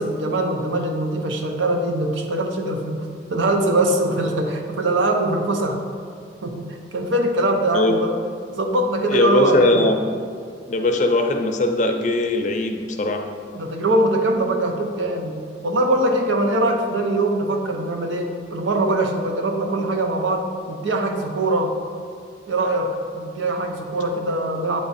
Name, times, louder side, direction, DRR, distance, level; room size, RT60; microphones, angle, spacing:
voice 1, 0.0-5.8 6.4-8.2 8.6-9.8 13.5-21.8 22.5-24.8, right 1 dB, 90° right, 3 dB, 0.7 m, -22 dB
voice 2, 9.1-10.0 10.7-13.3, left 2 dB, 40° left, 4 dB, 0.5 m, -20 dB
8.6 x 3.5 x 4.1 m, 2.2 s
head